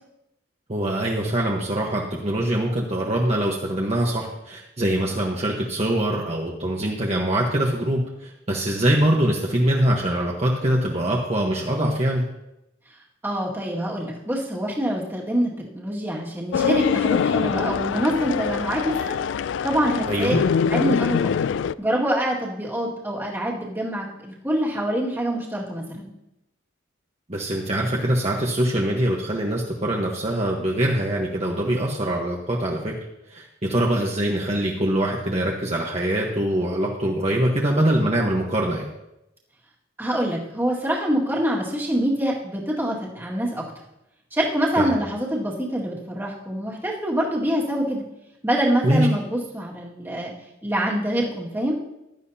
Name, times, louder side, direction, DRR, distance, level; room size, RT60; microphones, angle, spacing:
voice 1, 0.7-12.2 20.1-20.4 27.3-32.9 33.3-38.8 44.8-45.0 48.8-49.1, right 1 dB, 35° right, -2 dB, 1.2 m, -23 dB
voice 2, 13.2-19.2 19.6-20.3 20.7-21.3 21.8-26.1 40.0-43.7 44.3-48.0 48.4-50.3 50.6-51.8, equal, 10° right, -4 dB, 2.0 m, -25 dB
sound 1, 16.5-21.7, left 7 dB, 75° left, 0.3 m, -24 dB
16.0 x 12.0 x 2.8 m, 0.88 s
head